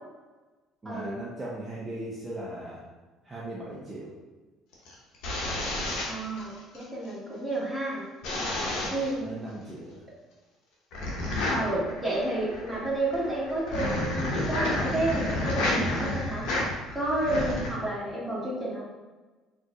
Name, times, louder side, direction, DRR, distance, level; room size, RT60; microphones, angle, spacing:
voice 1, 0.8-2.8 3.2-4.1 8.4-10.0 17.4-17.5, right 1 dB, 25° right, -7 dB, 0.8 m, -39 dB
sound 1, 4.7-6.8 8.2-9.2 10.9-17.7, left 1 dB, 70° left, 0.8 m, -30 dB
voice 2, 6.1-8.1 8.9-9.4 11.5-16.5 16.9-18.9, right 1 dB, 5° right, -7 dB, 1.5 m, -30 dB
3.9 x 2.5 x 2.4 m, 1.3 s
supercardioid pair, 70°, 0 cm